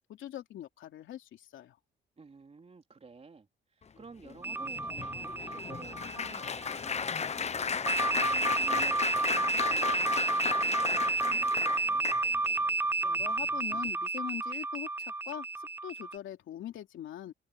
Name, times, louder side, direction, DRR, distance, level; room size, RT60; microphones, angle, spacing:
voice 1, 0.0-1.8 13.0-17.3, left 12 dB, 75° left, 3.1 m, -42 dB
voice 2, 2.2-8.0 8.6-12.1, right 4 dB, 30° right, 3.5 m, -52 dB
Applause, 4.2-12.6 13.2-13.4 13.7-13.9, left 6 dB, 35° left, 0.9 m, -35 dB
sound 1, 4.4-7.0 7.9-16.2, right 3 dB, 10° right, 0.4 m, -31 dB
cardioid pair, 90°, 20 cm